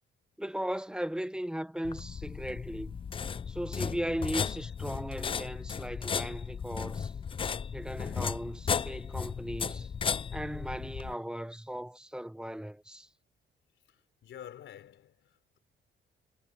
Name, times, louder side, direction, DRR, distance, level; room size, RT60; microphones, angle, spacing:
voice 1, 0.4-3.0 3.5-7.1 7.7-9.9 10.3-13.1, equal, 5° right, 1.0 m, -37 dB
sound 1, 1.8-11.1, left 6 dB, 25° left, 0.4 m, -35 dB
voice 2, 13.9-15.6, left 10 dB, 70° left, 4.2 m, -49 dB
cardioid pair, 90°, 20 cm